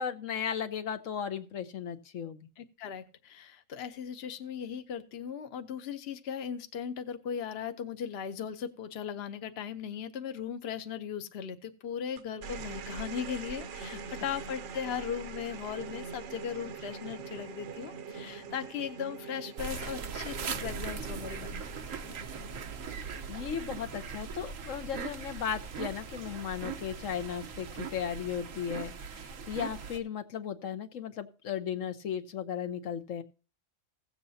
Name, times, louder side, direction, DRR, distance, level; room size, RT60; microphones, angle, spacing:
voice 1, 0.0-2.5 23.3-33.2, left 8 dB, 75° left, 7 dB, 1.2 m, -36 dB
voice 2, 2.6-21.7, left 8 dB, 55° left, 10 dB, 1.0 m, -38 dB
sound 1, 12.2-24.8 26.0-26.4, right 5 dB, 70° right, 1.1 m, -44 dB
sound 2, 19.6-30.0, right 5 dB, 90° right, 1.3 m, -40 dB
16.5 x 7.7 x 2.7 m, 0.34 s
omnidirectional pair, 1.3 m